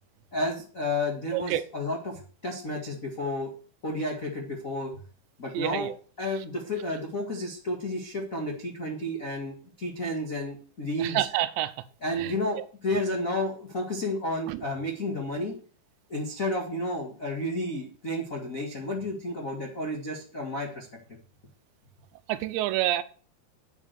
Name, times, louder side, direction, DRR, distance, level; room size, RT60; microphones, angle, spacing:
voice 1, 0.3-3.5 3.8-5.0 5.4-5.9 6.2-11.3 12.0-15.5 16.1-20.9, left 1 dB, 75° left, 0.7 m, -31 dB
voice 2, 1.3-1.7 5.5-5.9 11.0-11.7 12.2-12.6 14.5-14.6 22.3-23.0, right 14 dB, 90° right, 3.1 m, -28 dB
9.1 x 7.3 x 6.7 m
omnidirectional pair, 5.0 m